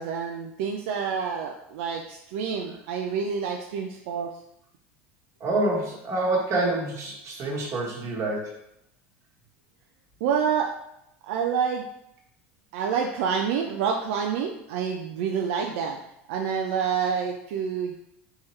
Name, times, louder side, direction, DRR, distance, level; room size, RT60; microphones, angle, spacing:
voice 1, 0.0-4.3 10.2-10.7 11.2-11.9 12.7-16.0 16.3-17.9, right 7 dB, 70° right, 1 dB, 0.4 m, -28 dB
voice 2, 5.4-8.5, right 2 dB, 40° right, -2 dB, 1.2 m, -27 dB
3.5 x 2.9 x 3.1 m, 0.80 s
hypercardioid pair, 90°, 7 cm